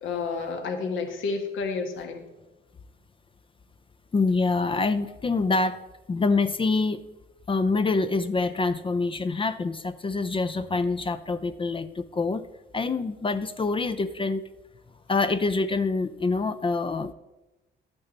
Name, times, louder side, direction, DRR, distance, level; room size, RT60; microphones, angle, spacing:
voice 1, 0.0-2.2, left 4 dB, 75° left, 4 dB, 1.5 m, -30 dB
voice 2, 4.1-5.8 6.1-7.0 7.5-12.5 12.7-14.4 15.1-17.1, left 3 dB, 25° left, 10 dB, 0.5 m, -26 dB
11.0 x 8.9 x 4.0 m, 1.0 s
cardioid pair, 90°, 20 cm